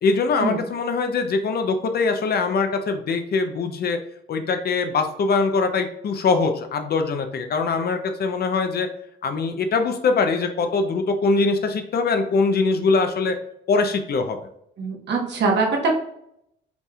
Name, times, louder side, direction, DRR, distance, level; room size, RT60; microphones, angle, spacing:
voice 1, 0.0-4.0 4.3-8.9 9.2-13.4 13.7-14.4, left 4 dB, 55° left, 7 dB, 0.6 m, -22 dB
voice 2, 14.8-15.9, right 3 dB, 60° right, 0 dB, 1.2 m, -22 dB
5.1 x 3.3 x 2.4 m, 0.74 s
cardioid pair, 90°, 20 cm